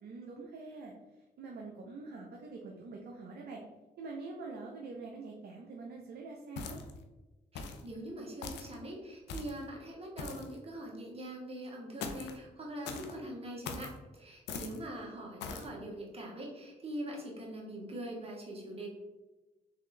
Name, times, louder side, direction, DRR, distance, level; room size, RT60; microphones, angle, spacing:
voice 1, 0.0-0.9 1.4-3.6 4.0-6.8, right 3 dB, 60° right, 0 dB, 0.7 m, -45 dB
sound 1, 6.6-7.0 7.6-7.9 8.4-8.7 9.3-9.6 10.2-10.5 12.0-12.4 12.8-13.1 13.6-13.9 14.5-14.8 15.4-15.7, left 5 dB, 75° left, 0.5 m, -41 dB
voice 2, 7.5-18.9, right 1 dB, 35° right, -1 dB, 1.4 m, -43 dB
3.7 x 3.3 x 3.2 m, 1.1 s
supercardioid pair, 55°, 18 cm